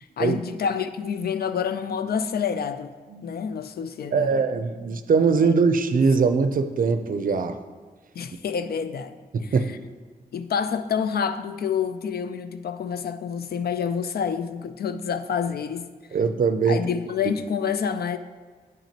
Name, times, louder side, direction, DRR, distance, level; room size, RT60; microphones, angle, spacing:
voice 1, 0.0-2.9 3.2-4.4 5.4-5.5 8.1-9.8 10.3-15.9 16.7-18.2, left 7 dB, 75° left, 11 dB, 0.4 m, -28 dB
voice 2, 4.1-7.6 9.3-9.7 16.1-16.8, right 5 dB, 60° right, 9 dB, 0.5 m, -21 dB
9.2 x 5.9 x 2.9 m, 1.5 s
wide cardioid pair, 135°, 16 cm